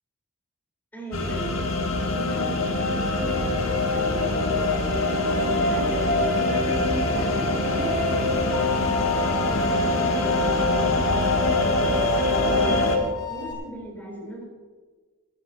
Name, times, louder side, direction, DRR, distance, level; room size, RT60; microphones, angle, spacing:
voice 1, 0.9-1.7 2.1-4.4 4.9-14.4, right 1 dB, 10° left, -2 dB, 4.1 m, -38 dB
sound 1, 1.1-13.0, left 2 dB, 75° left, 1.8 m, -23 dB
sound 2, 7.7-9.5, right 5 dB, 85° right, 2.4 m, -35 dB
sound 3, 8.5-13.5, left 11 dB, 40° left, 1.8 m, -35 dB
18.5 x 14.0 x 2.9 m, 1.4 s
head